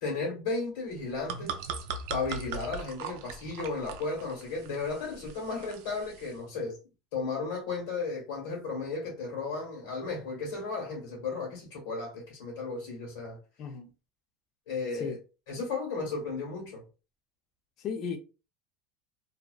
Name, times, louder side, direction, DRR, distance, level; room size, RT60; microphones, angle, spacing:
voice 1, 0.0-1.7 2.1-6.8 7.1-13.4 14.7-15.2 15.5-16.8, left 4 dB, 85° left, 1.3 m, -34 dB
sound 1, 0.9-6.4, right 6 dB, 75° right, 0.4 m, -40 dB
voice 2, 13.6-13.9 14.9-15.2 17.8-18.2, left 6 dB, 45° left, 0.5 m, -35 dB
2.6 x 2.1 x 2.3 m
supercardioid pair, 135°, 0 cm